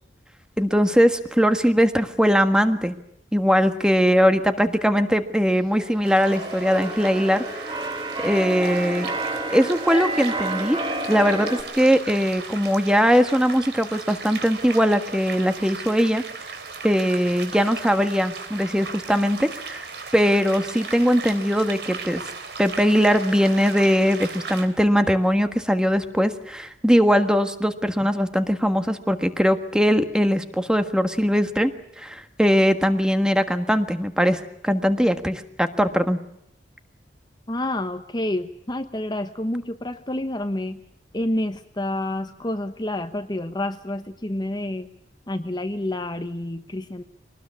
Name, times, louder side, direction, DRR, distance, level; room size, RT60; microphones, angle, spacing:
voice 1, 0.6-2.9 3.3-7.8 8.2-9.1 9.5-10.8 11.1-16.2 16.8-19.9 20.1-22.2 22.6-31.7 32.0-36.2, equal, 5° right, 8 dB, 1.5 m, -20 dB
Keyboard (musical), 5.7-11.6, right 2 dB, 25° right, 2.7 m, -30 dB
sound 1, 6.0-24.7, right 5 dB, 70° right, 3.7 m, -37 dB
voice 2, 37.5-40.8 41.1-44.9 45.3-47.0, left 1 dB, 25° left, 8 dB, 1.1 m, -28 dB
24.0 x 19.5 x 8.5 m, 0.77 s
head